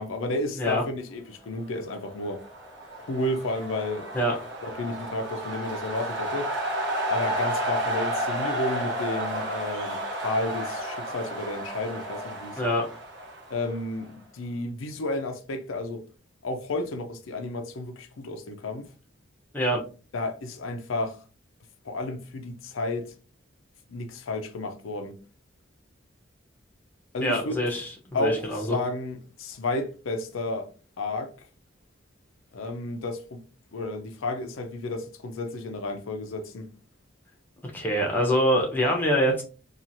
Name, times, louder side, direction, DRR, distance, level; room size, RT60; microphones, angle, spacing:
voice 1, 0.0-2.4 3.0-4.2 4.6-6.5 7.1-12.7 13.5-16.0 16.4-18.8 20.1-21.2 21.8-23.1 23.9-25.2 27.1-27.6 28.1-30.7 31.0-31.3 32.5-33.4 33.7-36.7, left 2 dB, 90° left, 0.5 m, -32 dB
sound 1, 2.1-14.1, right 1 dB, 60° right, 0.9 m, -32 dB
voice 2, 27.2-28.8 37.7-39.4, equal, 10° left, 0.7 m, -24 dB
2.9 x 2.4 x 2.6 m
head